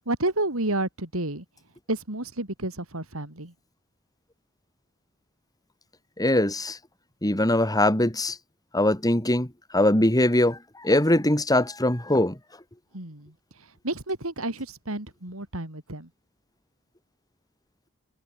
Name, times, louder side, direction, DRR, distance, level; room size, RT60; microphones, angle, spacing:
voice 1, 0.1-1.4 1.9-3.5 12.9-13.3 13.8-16.1, right 2 dB, 75° right, 4.6 m, -30 dB
voice 2, 6.2-6.8 7.2-8.4 8.7-9.5 9.7-12.4, left 1 dB, 20° left, 4.0 m, -22 dB
head